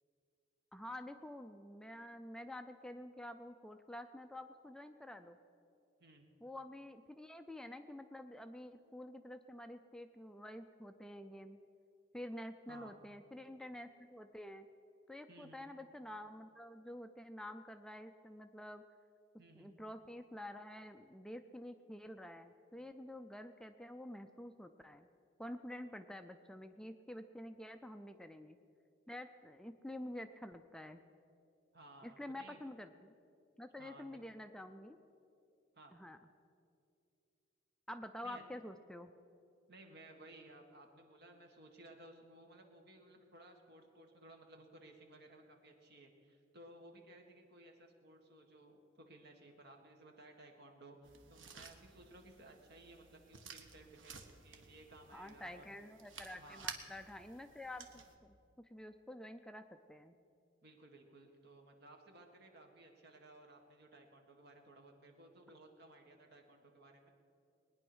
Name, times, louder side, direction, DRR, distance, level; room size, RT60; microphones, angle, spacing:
voice 1, 0.7-5.4 6.4-11.6 12.1-14.7 15.1-18.8 19.6-25.1 25.4-28.6 29.1-31.0 32.0-33.1 33.6-35.0 35.9-36.2 37.9-39.1 55.1-57.9 58.2-60.2, left 1 dB, 5° left, 8 dB, 0.4 m, -49 dB
voice 2, 6.0-6.3 12.7-12.9 15.3-15.7 19.4-19.7 31.7-32.6 33.8-34.2 35.7-35.9 38.2-38.4 39.7-55.7 56.3-56.7 60.6-67.1, right 2 dB, 60° right, 3 dB, 1.8 m, -58 dB
sound 1, 51.0-58.2, right 5 dB, 75° right, 1.2 m, -53 dB
20.0 x 9.9 x 6.2 m, 2.5 s
head